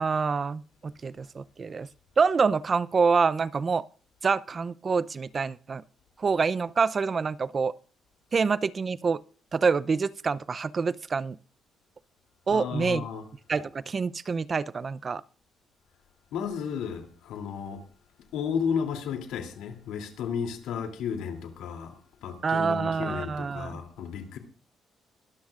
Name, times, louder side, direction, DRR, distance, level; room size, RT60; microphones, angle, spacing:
voice 1, 0.0-1.9 2.2-3.8 4.2-5.8 6.2-7.7 8.3-9.2 9.5-11.4 12.5-13.0 13.5-15.2 22.4-23.7, right 5 dB, 40° right, 0.6 m, -26 dB
voice 2, 12.5-13.3 16.3-17.8 18.3-24.4, left 7 dB, 90° left, 3.0 m, -33 dB
22.5 x 12.5 x 2.5 m
cardioid pair, 90°, 0 cm